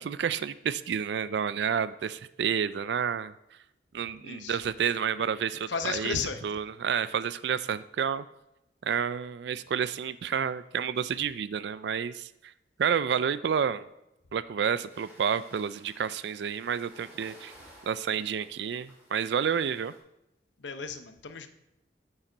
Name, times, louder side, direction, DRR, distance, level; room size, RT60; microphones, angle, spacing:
voice 1, 0.0-3.3 3.9-6.2 6.4-8.2 8.8-12.5 12.8-13.8 14.3-17.5 17.9-19.9, right 7 dB, 70° right, 15 dB, 0.3 m, -30 dB
voice 2, 4.2-4.6 5.7-6.4 20.6-21.5, left 5 dB, 80° left, 8 dB, 0.8 m, -34 dB
sound 1, 14.9-20.0, equal, 10° right, 2.7 m, -55 dB
8.9 x 8.8 x 3.9 m, 0.89 s
head